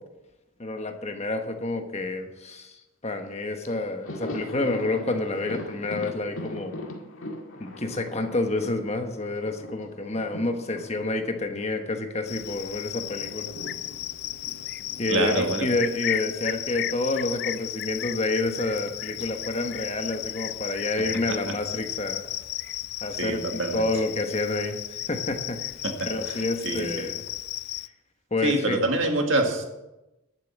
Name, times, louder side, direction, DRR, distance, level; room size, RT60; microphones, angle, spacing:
voice 1, 0.6-6.8 7.6-13.5 15.0-22.2 23.0-25.6 26.1-27.2 28.3-28.8, left 2 dB, 30° left, 5 dB, 1.2 m, -29 dB
Thunder, 3.3-3.4 3.6-12.4 12.7-17.0 17.3-17.4 18.6-19.3, left 1 dB, 70° left, 2.0 m, -41 dB
Cricket, 12.3-27.9, left 14 dB, 50° left, 0.4 m, -34 dB
voice 2, 15.1-15.7 23.2-23.9 25.8-25.9 26.2-27.1 28.4-29.6, right 2 dB, 60° right, 3 dB, 1.9 m, -26 dB
11.5 x 7.7 x 7.3 m, 0.97 s
head